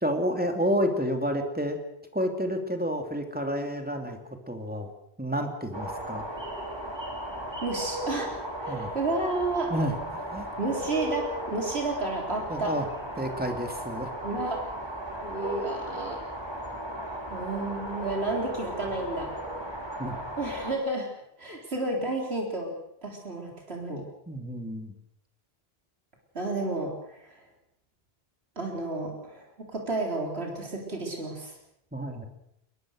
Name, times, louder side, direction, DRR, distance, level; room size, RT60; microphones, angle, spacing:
voice 1, 0.0-1.8 2.1-4.2 4.5-4.9 5.2-6.3 8.7-8.9 9.7-10.5 12.5-12.8 13.2-14.1 20.0-20.2 24.3-24.9 31.9-32.3, equal, 10° right, 4 dB, 2.9 m, -30 dB
sound 1, 5.7-20.8, right 1 dB, 25° right, 4.2 m, -36 dB
voice 2, 7.6-8.3 8.6-9.7 10.6-12.8 14.2-14.6 15.2-16.2 17.3-19.3 20.4-21.1 21.4-22.8 23.0-24.1 26.3-27.4 28.6-31.6, right 2 dB, 80° right, 0 dB, 4.2 m, -31 dB
22.0 x 21.0 x 6.5 m, 0.76 s
omnidirectional pair, 1.1 m